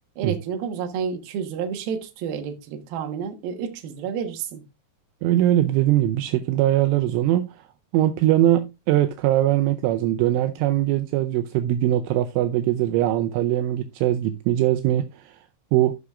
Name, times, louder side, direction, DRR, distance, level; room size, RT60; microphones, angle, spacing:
voice 1, 0.2-4.6, right 7 dB, 65° right, 2.5 m, -30 dB
voice 2, 5.2-7.5 7.9-15.4 15.7-15.9, right 13 dB, 80° right, 2.9 m, -21 dB
14.0 x 6.1 x 2.4 m
omnidirectional pair, 5.8 m